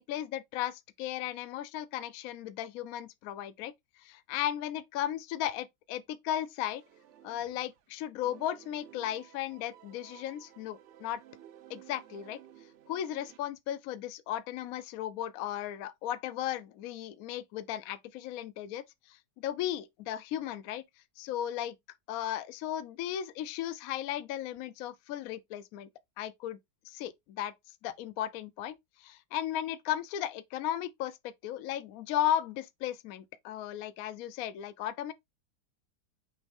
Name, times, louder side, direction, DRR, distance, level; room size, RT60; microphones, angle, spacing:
voice 1, 0.0-3.7 4.0-6.8 7.2-11.2 11.7-12.4 12.9-20.8 21.2-21.7 22.1-25.9 26.2-26.6 26.8-27.5 27.8-35.1, left 11 dB, 70° left, 0.9 m, -35 dB
sound 1, 6.6-7.9 8.2-13.4, right 11 dB, 80° right, 0.6 m, -55 dB
6.1 x 2.4 x 3.5 m
omnidirectional pair, 1.9 m